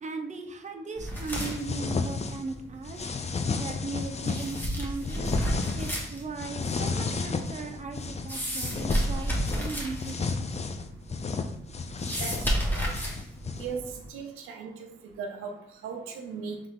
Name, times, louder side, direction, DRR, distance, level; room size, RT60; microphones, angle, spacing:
voice 1, 0.0-3.1 3.5-5.4 5.8-10.5, right 4 dB, 35° right, 5 dB, 0.7 m, -38 dB
sound 1, 1.0-14.1, equal, 10° left, 1.4 m, -34 dB
sound 2, 1.3-2.5 2.8-4.7 5.0-6.1 6.4-8.3 8.6-13.8, left 4 dB, 30° left, 0.4 m, -32 dB
voice 2, 12.2-13.0 13.6-16.6, right 5 dB, 90° right, 3 dB, 0.6 m, -38 dB
3.6 x 3.2 x 3.6 m, 0.71 s
supercardioid pair, 55°, 21 cm